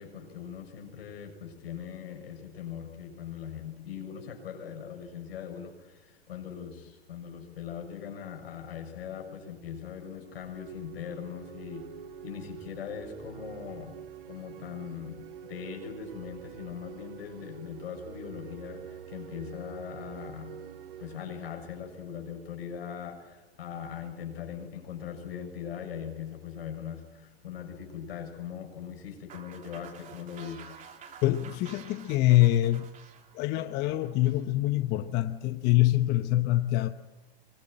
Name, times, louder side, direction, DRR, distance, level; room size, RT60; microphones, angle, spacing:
voice 1, 0.0-11.9 12.2-20.6 21.0-30.8, left 8 dB, 75° left, 3 dB, 7.1 m, -40 dB
sound 1, 10.1-22.8, right 8 dB, 60° right, 2.6 m, -47 dB
sound 2, 29.3-34.4, right 7 dB, 25° right, 3.4 m, -50 dB
voice 2, 31.2-32.9 33.3-36.9, left 15 dB, 35° left, 9 dB, 0.9 m, -25 dB
23.5 x 22.5 x 7.7 m, 1.1 s
hypercardioid pair, 125°, 31 cm